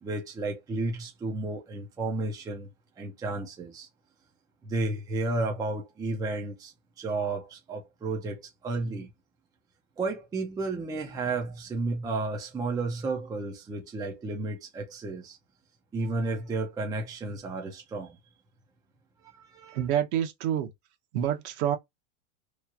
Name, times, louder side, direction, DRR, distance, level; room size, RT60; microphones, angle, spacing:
voice 1, 0.0-2.7 3.0-3.9 4.6-9.1 10.0-15.4 15.9-18.2 19.3-19.8, right 2 dB, 10° right, 0.6 m, -32 dB
voice 2, 19.7-20.7 21.1-21.8, right 10 dB, 55° right, 1.0 m, -27 dB
3.1 x 2.5 x 2.4 m
supercardioid pair, 135°, 41 cm